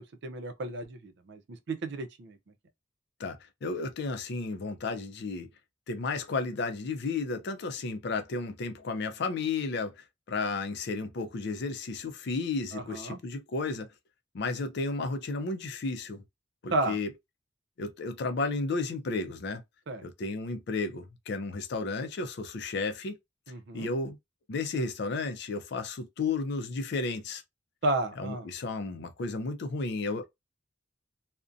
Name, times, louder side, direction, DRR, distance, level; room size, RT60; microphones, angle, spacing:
voice 1, 0.0-2.4 12.7-13.2 16.7-17.0 19.9-20.1 23.5-23.9 27.8-28.5, right 2 dB, 60° right, 0.5 m, -33 dB
voice 2, 3.2-5.5 5.9-9.9 10.3-13.9 14.3-16.2 16.6-17.1 17.8-19.6 20.0-23.2 23.7-24.2 24.5-27.4 28.2-30.2, left 3 dB, 60° left, 0.4 m, -33 dB
2.5 x 2.1 x 2.4 m
head